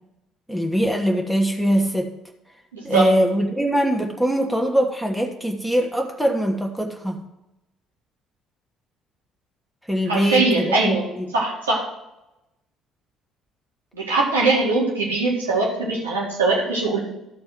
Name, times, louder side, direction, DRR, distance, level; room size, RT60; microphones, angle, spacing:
voice 1, 0.5-2.1 2.8-7.2 9.9-11.3, equal, 5° right, 2 dB, 1.3 m, -22 dB
voice 2, 2.7-3.1 10.1-11.0 11.3-11.8 13.9-17.0, right 3 dB, 75° right, -3 dB, 2.1 m, -21 dB
13.0 x 4.3 x 5.9 m, 0.92 s
figure-of-eight pair, 50°, 0 cm